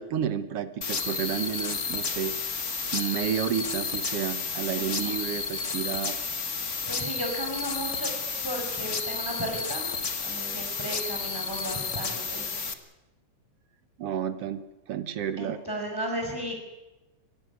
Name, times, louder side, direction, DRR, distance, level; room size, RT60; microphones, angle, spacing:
voice 1, 0.0-2.4 2.9-6.2 14.0-15.6, right 9 dB, 60° right, 11 dB, 1.9 m, -31 dB
sound 1, 0.8-12.7, left 5 dB, 40° left, 1.1 m, -32 dB
voice 2, 4.8-5.1 6.9-8.1 8.4-9.8 10.2-12.5 15.4-16.6, right 1 dB, 5° left, 2 dB, 5.1 m, -34 dB
24.5 x 16.5 x 9.6 m, 1.0 s
omnidirectional pair, 3.4 m